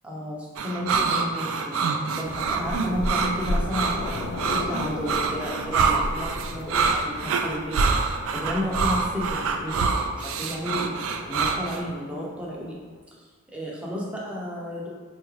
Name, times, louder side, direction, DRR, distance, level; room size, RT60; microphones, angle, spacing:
voice 1, 0.0-7.9 8.3-10.9 11.3-12.8 13.5-14.9, equal, 5° right, -4 dB, 0.5 m, -32 dB
sound 1, 0.6-11.8, right 5 dB, 70° right, 0.3 m, -26 dB
sound 2, 2.2-13.0, left 2 dB, 60° left, 0.3 m, -35 dB
4.0 x 2.3 x 3.0 m, 1.5 s
head